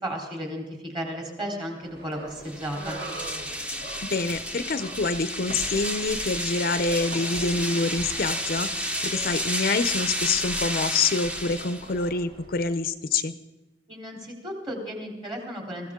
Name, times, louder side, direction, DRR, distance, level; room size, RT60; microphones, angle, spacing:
voice 1, 0.0-3.0 13.9-15.9, equal, 25° right, 0 dB, 3.7 m, -34 dB
sound 1, 1.8-12.7, right 2 dB, 55° right, 2.5 m, -44 dB
sound 2, 2.4-12.1, equal, 5° right, 0.8 m, -31 dB
voice 2, 4.1-13.3, left 4 dB, 50° left, 12 dB, 0.6 m, -26 dB
21.5 x 15.5 x 3.7 m, 1.1 s
head